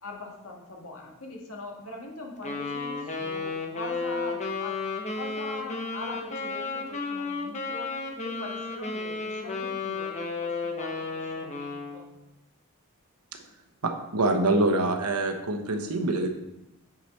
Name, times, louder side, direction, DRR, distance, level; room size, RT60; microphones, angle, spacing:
voice 1, 0.0-4.8 5.1-12.1, left 2 dB, 70° left, 0 dB, 1.7 m, -42 dB
Wind instrument woodwind instrument, 2.4-12.0, left 4 dB, 30° left, 1.0 m, -33 dB
voice 2, 13.8-16.3, right 2 dB, 85° right, 5 dB, 1.0 m, -25 dB
9.4 x 4.9 x 4.3 m, 0.91 s
head